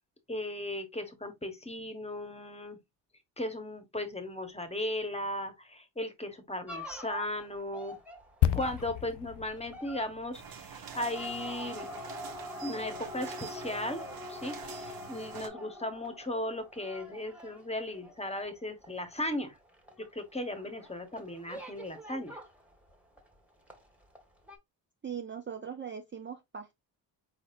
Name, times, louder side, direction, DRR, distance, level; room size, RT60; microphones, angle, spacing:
voice 1, 0.3-2.8 3.4-8.0 8.5-11.9 12.6-19.5 20.0-22.4, left 1 dB, 15° left, 1.2 m, -37 dB
sound 1, 6.7-23.3 23.7-24.2 24.5-24.6, equal, 5° right, 1.5 m, -45 dB
sound 2, 8.4-12.1 12.3-12.5, left 11 dB, 60° left, 0.6 m, -33 dB
sound 3, 10.3-15.5, right 7 dB, 50° right, 1.1 m, -46 dB
voice 2, 25.0-26.8, right 7 dB, 25° right, 0.6 m, -40 dB
4.3 x 4.1 x 2.6 m
cardioid pair, 90°, 47 cm